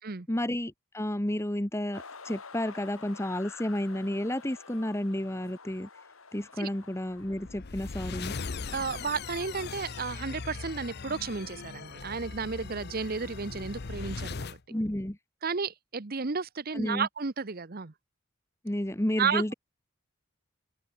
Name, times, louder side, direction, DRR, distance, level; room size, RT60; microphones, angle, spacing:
voice 1, 0.3-5.9 6.3-8.3 14.7-15.2 16.7-17.1 18.6-19.5, left 1 dB, 15° left, 1.2 m, -31 dB
sound 1, 1.9-7.5, left 4 dB, 80° left, 3.7 m, -48 dB
sound 2, 7.2-14.6, left 4 dB, 50° left, 0.7 m, -39 dB
voice 2, 8.7-14.6 15.4-17.9 19.2-19.5, right 5 dB, 45° right, 0.9 m, -33 dB
open air
head